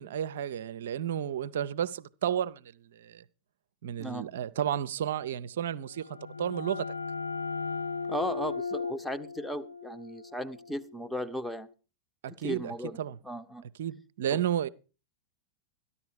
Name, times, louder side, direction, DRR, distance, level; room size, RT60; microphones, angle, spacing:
voice 1, 0.0-3.2 3.8-7.0 12.2-13.2 13.6-14.7, right 10 dB, 60° right, 0.6 m, -32 dB
sound 1, 5.8-11.4, left 4 dB, 80° left, 0.6 m, -37 dB
voice 2, 8.1-11.7 12.4-13.0 13.2-13.6, equal, ahead, 1.0 m, -36 dB
13.5 x 11.0 x 4.6 m
figure-of-eight pair, 90°, 0 cm